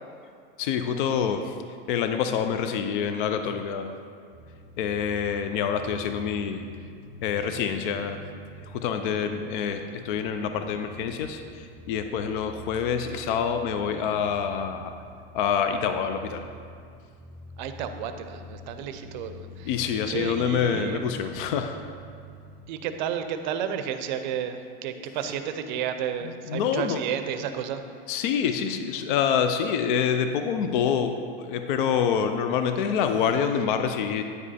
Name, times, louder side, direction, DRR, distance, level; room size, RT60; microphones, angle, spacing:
voice 1, 0.6-1.6 1.9-3.9 4.8-6.7 7.2-8.3 8.6-14.9 15.3-16.4 19.6-21.8 26.5-27.0 28.1-34.2, left 7 dB, 55° left, 7 dB, 0.5 m, -26 dB
sound 1, 4.3-22.6, equal, 35° left, 1.8 m, -46 dB
voice 2, 17.6-21.1 22.7-27.8, right 8 dB, 50° right, 8 dB, 0.5 m, -32 dB
9.4 x 5.2 x 4.1 m, 2.2 s
supercardioid pair, 175°, 30 cm